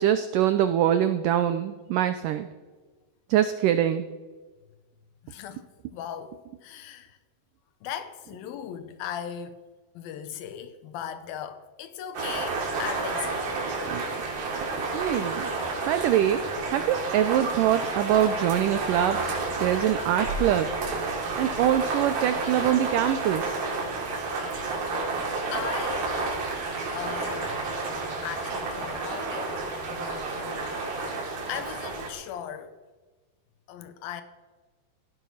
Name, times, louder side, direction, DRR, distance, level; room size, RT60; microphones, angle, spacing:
voice 1, 0.0-2.5 3.3-4.1 13.9-14.0 14.9-15.5 15.9-19.2 19.6-20.7 21.4-23.7, right 11 dB, 90° right, 1.8 m, -24 dB
voice 2, 5.2-7.2 7.8-9.6 9.9-13.6 25.5-26.3 26.9-27.7 28.2-31.2 31.5-32.8 33.7-34.2, left 9 dB, 70° left, 2.6 m, -38 dB
sound 1, 12.1-32.1, right 3 dB, 70° right, 4.9 m, -30 dB
Applause / Crowd, 24.8-31.4, right 2 dB, 40° right, 5.7 m, -46 dB
17.0 x 14.5 x 5.7 m
omnidirectional pair, 4.7 m